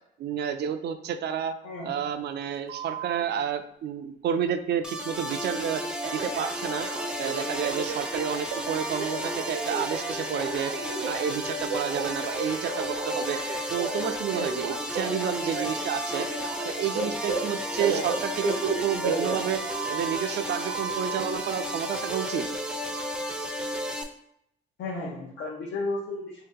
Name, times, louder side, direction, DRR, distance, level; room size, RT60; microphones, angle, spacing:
voice 1, 0.2-1.5 1.8-5.8 6.1-6.9 7.2-10.7 11.0-13.4 13.7-16.3 16.6-19.6 19.9-22.5, right 8 dB, 60° right, 8 dB, 0.4 m, -30 dB
voice 2, 1.6-2.1 24.8-26.4, left 2 dB, 75° left, -3 dB, 0.8 m, -33 dB
Telephone, 2.7-3.2 6.0-20.2 20.7-21.2, right 4 dB, 85° right, 0.8 m, -33 dB
sound 1, 4.8-24.0, equal, 5° right, 0.5 m, -33 dB
2.8 x 2.7 x 3.6 m, 0.73 s
cardioid pair, 90°, 20 cm